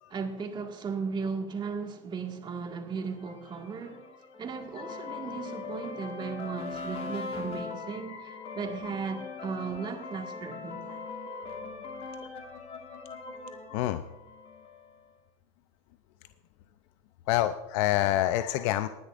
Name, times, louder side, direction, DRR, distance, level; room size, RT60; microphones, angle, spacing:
voice 1, 0.1-4.0 4.4-11.0, right 5 dB, 25° right, 2.0 m, -36 dB
sound 1, 3.2-15.0, left 4 dB, 35° left, 1.9 m, -41 dB
voice 2, 13.7-14.0 17.3-18.9, left 14 dB, 60° left, 0.6 m, -26 dB
19.5 x 10.0 x 2.6 m
hypercardioid pair, 110°, 18 cm